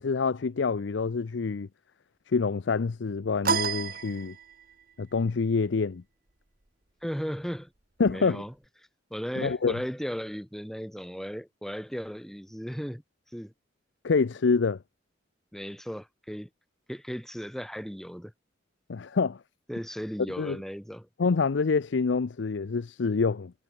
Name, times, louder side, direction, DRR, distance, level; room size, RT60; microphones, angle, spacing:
voice 1, 0.0-1.7 2.3-4.3 5.0-6.0 8.0-8.4 9.4-9.8 14.0-14.8 18.9-19.4 20.4-20.6 21.2-23.5, left 4 dB, 70° left, 0.5 m, -26 dB
sound 1, 3.4-4.8, right 5 dB, 50° right, 2.0 m, -30 dB
voice 2, 7.0-7.7 8.0-8.5 9.1-13.0 13.3-13.5 15.5-16.5 16.9-18.3 19.7-21.1, equal, ahead, 6.0 m, -36 dB
head